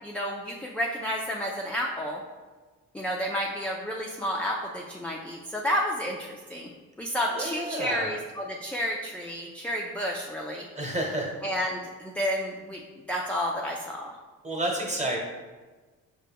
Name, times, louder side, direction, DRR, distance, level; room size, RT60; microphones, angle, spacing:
voice 1, 0.0-2.2 2.9-6.7 7.0-10.7 11.4-12.8 13.1-14.1, equal, 5° left, -2 dB, 0.3 m, -31 dB
voice 2, 7.3-8.1 10.7-11.3 14.4-15.2, right 1 dB, 25° right, -1 dB, 1.0 m, -30 dB
5.5 x 2.2 x 3.4 m, 1.3 s
cardioid pair, 90°, 30 cm